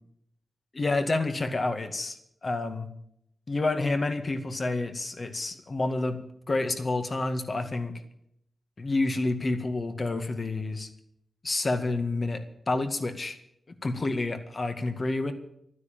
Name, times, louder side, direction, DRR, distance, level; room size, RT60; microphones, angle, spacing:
voice 1, 0.7-2.9 3.5-6.2 6.5-7.9 8.8-10.9 11.4-13.4 13.8-15.3, left 2 dB, 45° left, 7 dB, 2.0 m, -29 dB
12.5 x 9.7 x 9.1 m, 0.75 s
cardioid pair, 60°, 0 cm